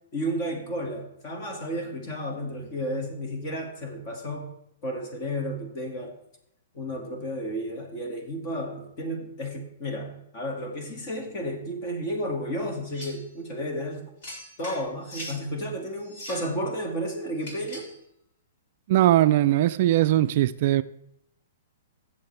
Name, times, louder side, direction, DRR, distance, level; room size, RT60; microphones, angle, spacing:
voice 1, 0.1-4.5 4.8-6.2 6.7-14.0 14.6-17.9, equal, 35° left, 3 dB, 2.1 m, -32 dB
sound 1, 12.9-13.3 14.2-15.4 16.0-16.5 17.4-18.0, left 1 dB, 50° left, 4.4 m, -41 dB
voice 2, 18.9-20.8, right 14 dB, 45° right, 13 dB, 0.3 m, -20 dB
15.0 x 7.5 x 3.3 m, 0.77 s
hypercardioid pair, 165°, 0 cm